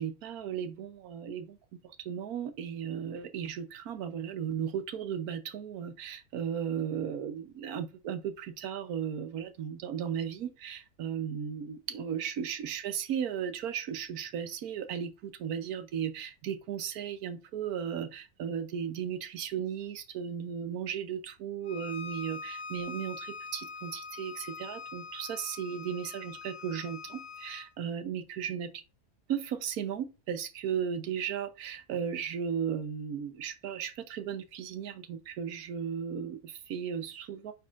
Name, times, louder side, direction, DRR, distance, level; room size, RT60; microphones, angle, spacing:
voice 1, 0.0-1.6 1.8-28.8 29.3-37.5, right 8 dB, 80° right, 1.3 m, -36 dB
Bowed string instrument, 21.6-27.7, left 4 dB, 55° left, 1.5 m, -43 dB
9.3 x 4.2 x 2.5 m
omnidirectional pair, 1.5 m